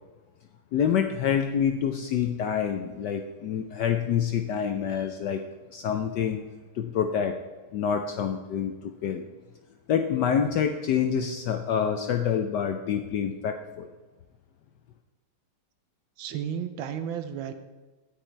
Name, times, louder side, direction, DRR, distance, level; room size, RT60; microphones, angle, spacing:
voice 1, 0.7-5.4 5.7-6.4 6.7-7.4 7.7-9.2 9.9-13.9, left 8 dB, 75° left, 6 dB, 1.0 m, -27 dB
voice 2, 16.2-17.5, right 8 dB, 70° right, 9 dB, 1.3 m, -33 dB
9.4 x 9.1 x 4.5 m, 1.2 s
omnidirectional pair, 2.4 m